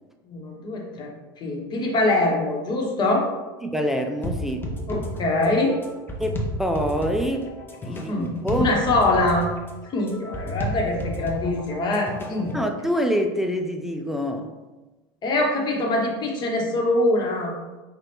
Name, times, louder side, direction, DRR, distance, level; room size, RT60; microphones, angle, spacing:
voice 1, 0.2-3.3 4.9-5.8 7.9-8.3 8.6-9.5 9.9-12.5 15.2-17.5, left 2 dB, 35° left, -1 dB, 1.1 m, -23 dB
voice 2, 3.6-4.7 6.2-7.6 7.9-8.7 12.5-14.6, equal, 5° right, 4 dB, 0.4 m, -26 dB
sound 1, 4.2-12.7, equal, 15° left, 0.8 m, -32 dB
5.6 x 2.4 x 3.3 m, 1.2 s
hypercardioid pair, 95°, 12 cm